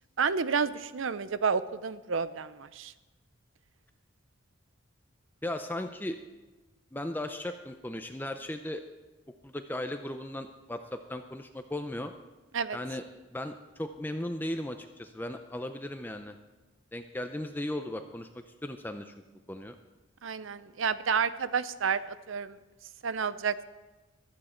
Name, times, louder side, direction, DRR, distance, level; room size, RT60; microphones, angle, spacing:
voice 1, 0.2-2.9 12.5-12.8 20.2-22.6 23.0-23.6, right 6 dB, 75° right, 14 dB, 0.6 m, -30 dB
voice 2, 5.4-6.2 6.9-8.8 9.4-12.1 12.7-13.0 13.3-16.4 16.9-19.1 19.5-19.8, left 1 dB, 10° left, 7 dB, 0.5 m, -36 dB
15.5 x 13.0 x 4.4 m, 1.2 s
head